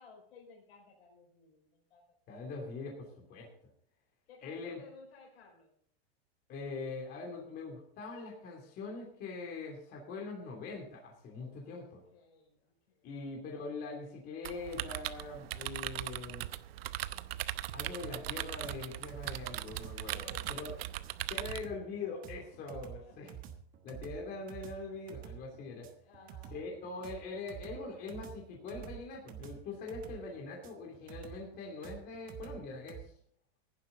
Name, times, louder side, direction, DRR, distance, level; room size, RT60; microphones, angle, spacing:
voice 1, 0.0-2.2 4.3-5.7 11.5-13.1 20.1-20.9 22.7-23.4 26.0-26.7, left 3 dB, 75° left, 1 dB, 5.3 m, -57 dB
voice 2, 2.3-3.5 4.4-4.8 6.5-12.0 13.0-16.5 17.7-20.7 21.3-23.4 23.8-25.9 26.5-33.1, left 3 dB, 30° left, 0 dB, 2.9 m, -43 dB
sound 1, 14.4-21.6, right 14 dB, 70° right, 0.8 m, -39 dB
sound 2, 18.6-33.0, right 11 dB, 25° right, 1.4 m, -49 dB
16.0 x 11.0 x 4.0 m, 0.63 s
supercardioid pair, 155°, 31 cm